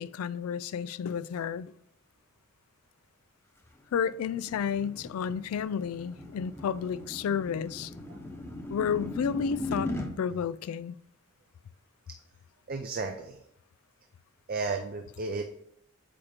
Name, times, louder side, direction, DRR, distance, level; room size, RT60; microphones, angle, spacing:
voice 1, 0.0-1.7 3.9-7.9 8.7-11.0, left 7 dB, 90° left, 0.3 m, -31 dB
sound 1, 3.6-10.1, left 1 dB, 10° left, 0.8 m, -39 dB
voice 2, 12.7-13.4 14.5-15.4, right 4 dB, 45° right, 0.5 m, -33 dB
8.5 x 2.9 x 5.0 m
head